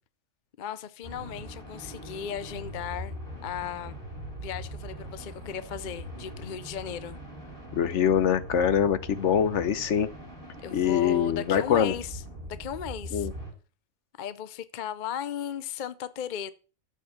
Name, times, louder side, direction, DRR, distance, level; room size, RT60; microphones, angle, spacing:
voice 1, 0.6-3.1 3.4-4.0 4.4-7.2 10.6-12.2 12.5-13.3 14.2-16.5, left 9 dB, 50° left, 0.6 m, -36 dB
sound 1, 1.0-13.5, right 1 dB, 45° right, 4.2 m, -41 dB
voice 2, 7.7-10.1 10.7-11.9 13.1-13.3, left 8 dB, 65° left, 1.1 m, -24 dB
7.6 x 7.1 x 8.0 m
omnidirectional pair, 1.4 m